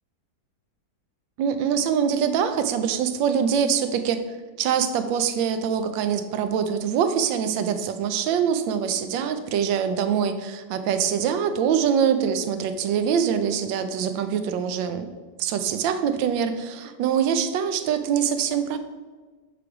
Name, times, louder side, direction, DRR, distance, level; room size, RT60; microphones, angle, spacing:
voice 1, 1.4-4.2 4.6-15.1 15.4-18.8, right 7 dB, 75° right, 9 dB, 1.3 m, -24 dB
7.8 x 3.3 x 4.7 m, 1.4 s
omnidirectional pair, 2.1 m